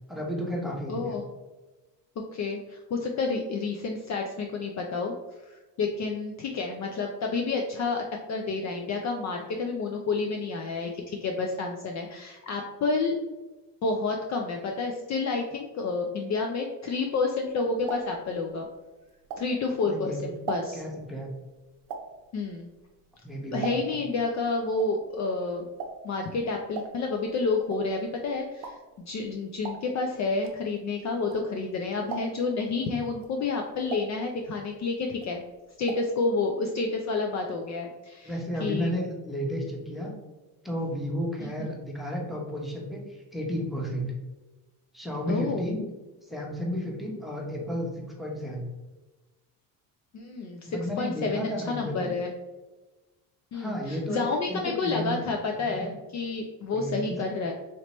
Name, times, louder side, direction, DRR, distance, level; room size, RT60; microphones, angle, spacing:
voice 1, 0.1-1.2 19.9-20.3 20.7-21.3 23.2-24.0 38.2-40.1 40.6-44.1 44.9-45.8 46.3-48.7 50.7-52.1 53.5-54.2 54.5-55.2 55.5-55.9 56.7-57.2, equal, ahead, -2 dB, 0.9 m, -32 dB
voice 2, 0.9-1.2 2.3-5.1 5.5-13.1 13.8-18.7 19.4-20.8 22.3-22.7 23.5-25.7 26.0-35.4 35.8-38.3 38.6-38.9 41.4-41.7 45.3-45.7 50.1-52.3 53.5-57.5, left 3 dB, 40° left, 2 dB, 0.4 m, -30 dB
sound 1, 17.3-19.9 20.2-24.2 24.4-31.7 32.0-32.6 33.1-34.8 35.1-36.2 36.4-36.5 36.8-36.9, right 5 dB, 70° right, 0.7 m, -40 dB
3.2 x 2.8 x 2.9 m, 1.2 s
supercardioid pair, 80°, 43 cm